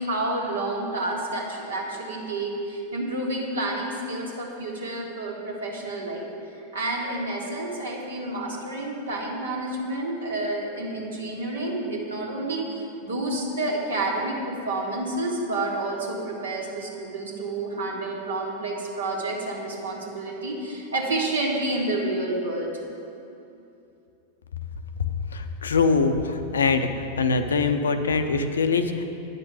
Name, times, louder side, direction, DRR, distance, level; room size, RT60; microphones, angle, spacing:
voice 1, 0.0-6.3 6.7-12.6 13.0-22.7, right 2 dB, 70° right, -1 dB, 1.8 m, -29 dB
voice 2, 25.3-26.9 27.2-29.0, left 4 dB, 70° left, 8 dB, 0.6 m, -23 dB
9.7 x 6.7 x 7.9 m, 2.7 s
figure-of-eight pair, 90°, 0 cm